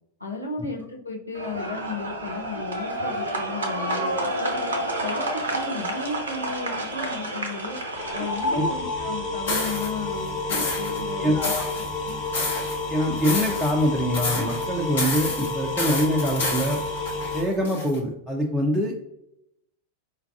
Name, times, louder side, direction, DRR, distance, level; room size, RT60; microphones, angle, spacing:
voice 1, 0.2-4.6 5.0-7.8 8.1-11.5 12.0-12.2, left 3 dB, 85° left, 0 dB, 0.6 m, -34 dB
sound 1, 1.3-8.7, right 1 dB, 70° right, 0.5 m, -29 dB
sound 2, 7.9-17.4, left 2 dB, 40° left, 1.2 m, -30 dB
sound 3, 9.5-9.9 10.5-11.0 11.4-12.8 13.2-13.9 14.1-14.6 15.0-18.0, left 2 dB, 65° left, 1.0 m, -29 dB
voice 2, 11.2-11.6 12.9-16.8 17.3-19.0, equal, 5° right, -2 dB, 0.4 m, -24 dB
4.5 x 2.2 x 2.4 m, 0.80 s
figure-of-eight pair, 90°, 0 cm